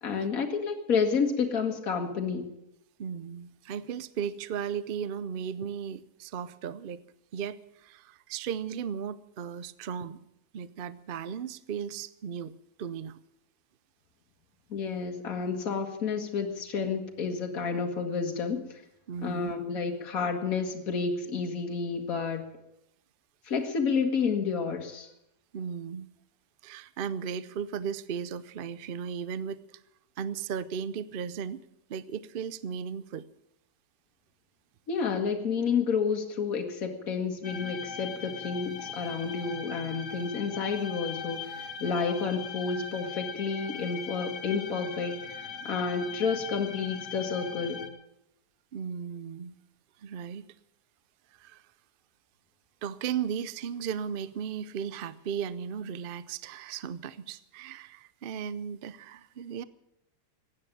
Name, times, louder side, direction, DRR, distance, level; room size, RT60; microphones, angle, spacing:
voice 1, 0.0-2.5 14.7-18.8 19.2-22.5 23.4-25.1 34.9-47.8, left 5 dB, 60° left, 3 dB, 2.1 m, -30 dB
voice 2, 3.0-7.0 7.3-10.2 10.5-12.5 12.8-13.2 19.1-19.5 25.5-26.1 26.6-29.8 30.2-31.6 31.9-33.2 48.7-49.6 50.0-50.5 51.4-51.6 52.8-59.6, right 7 dB, 55° right, 16 dB, 0.6 m, -36 dB
sound 1, 37.4-47.9, left 6 dB, 80° left, 2.1 m, -40 dB
16.0 x 9.8 x 9.2 m, 0.83 s
omnidirectional pair, 1.7 m